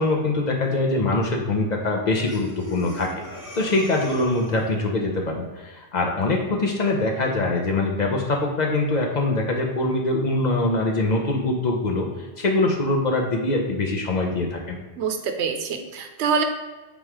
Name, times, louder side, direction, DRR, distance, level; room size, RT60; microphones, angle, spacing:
voice 1, 0.0-3.1 3.5-14.8, left 2 dB, 50° left, 1 dB, 0.6 m, -23 dB
Breathing, 2.3-4.8, left 1 dB, 10° left, 1.1 m, -39 dB
voice 2, 15.0-16.4, right 6 dB, 90° right, 6 dB, 0.9 m, -25 dB
3.5 x 3.0 x 4.6 m, 1.2 s
omnidirectional pair, 1.1 m